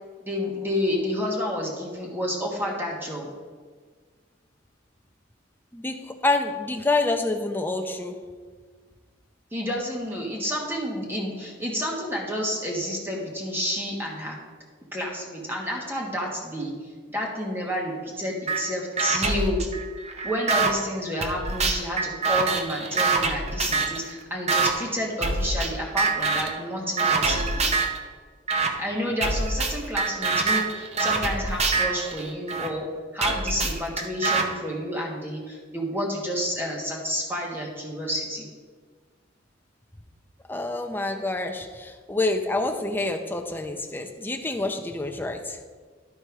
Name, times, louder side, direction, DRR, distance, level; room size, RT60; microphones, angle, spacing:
voice 1, 0.2-3.3 9.5-14.4 14.9-16.7 17.1-19.6 20.2-27.7 28.8-32.9 33.1-38.5, equal, 10° right, -2 dB, 1.5 m, -30 dB
voice 2, 5.7-8.3 40.5-45.6, left 2 dB, 10° left, 4 dB, 0.6 m, -27 dB
sound 1, 18.5-18.6 19.0-20.7 21.2-24.0 24.5-24.7 25.2-25.7 26.0-26.6 27.0-28.0 28.5-28.7 29.2-32.7 33.2-34.4, right 4 dB, 35° right, 0.7 m, -25 dB
12.0 x 4.4 x 4.7 m, 1.5 s
head